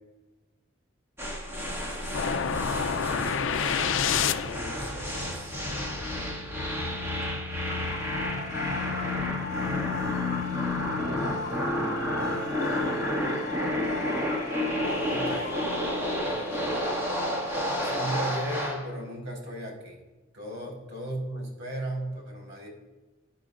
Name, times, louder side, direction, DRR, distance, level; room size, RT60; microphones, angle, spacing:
sound 1, 1.2-18.9, left 1 dB, 10° right, 1.9 m, -30 dB
sound 2, 2.1-4.8, left 7 dB, 70° left, 0.5 m, -27 dB
voice 1, 4.0-5.6 11.4-12.7 15.1-15.6 16.3-17.0 17.8-20.0 20.3-22.7, right 1 dB, 65° right, 0 dB, 4.3 m, -37 dB
sound 3, 7.6-18.3, left 2 dB, 35° left, 2.0 m, -38 dB
20.0 x 9.1 x 2.5 m, 1.2 s
head